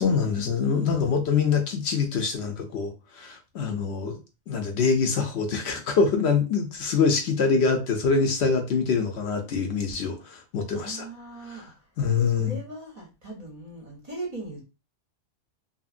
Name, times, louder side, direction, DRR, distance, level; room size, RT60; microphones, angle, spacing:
voice 1, 0.0-4.2 4.5-11.1 11.5-11.7 12.0-12.6, left 5 dB, 70° left, 0.8 m, -25 dB
voice 2, 0.6-0.9 10.8-11.7 12.2-14.6, right 2 dB, 40° right, 0.7 m, -39 dB
2.8 x 2.6 x 2.4 m
omnidirectional pair, 1.2 m